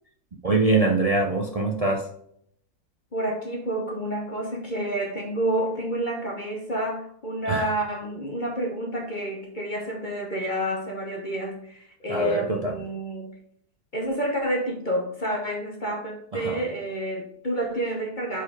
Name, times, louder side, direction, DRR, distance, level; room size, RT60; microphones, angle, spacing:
voice 1, 0.4-2.1 7.5-7.7 12.1-12.7 16.3-16.6, right 3 dB, 70° right, 0 dB, 0.3 m, -23 dB
voice 2, 3.1-13.3 13.9-18.4, right 1 dB, 35° left, 0 dB, 1.1 m, -29 dB
5.0 x 4.7 x 4.7 m, 0.68 s
omnidirectional pair, 1.7 m